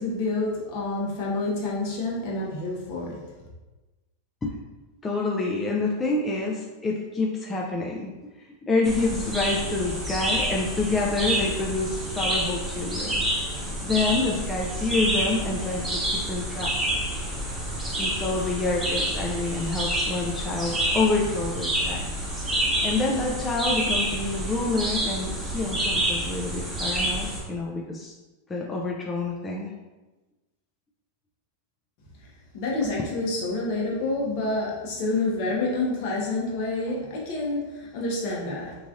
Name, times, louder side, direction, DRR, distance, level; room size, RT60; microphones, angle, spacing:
voice 1, 0.0-3.2 32.5-38.8, left 2 dB, 55° left, -3 dB, 0.9 m, -28 dB
voice 2, 5.0-8.1 8.4-13.3 13.8-16.7 18.0-22.1 22.8-28.1 28.5-29.7 32.8-32.9, left 3 dB, 15° left, -2 dB, 0.3 m, -27 dB
sound 1, 8.8-27.4, right 1 dB, 5° right, 0.8 m, -28 dB
3.1 x 2.4 x 2.4 m, 1.1 s
supercardioid pair, 130°, 0 cm